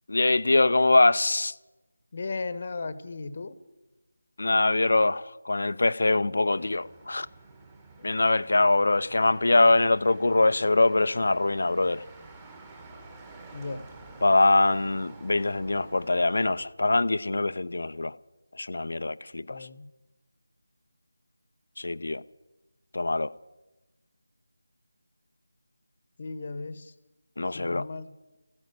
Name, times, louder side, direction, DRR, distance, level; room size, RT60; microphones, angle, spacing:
voice 1, 0.1-1.5 4.4-7.3 8.0-12.0 14.2-18.2 18.6-19.6 21.8-22.2 22.9-23.3 27.4-27.9, left 2 dB, 55° left, 0.6 m, -23 dB
voice 2, 2.1-3.5 8.0-8.1 13.5-13.9 19.5-19.9 26.2-26.9 27.5-28.1, left 3 dB, 35° left, 1.1 m, -36 dB
Motor vehicle (road), 6.6-16.7, right 3 dB, 15° right, 1.7 m, -50 dB
15.0 x 10.5 x 9.0 m
figure-of-eight pair, 160°, 0 cm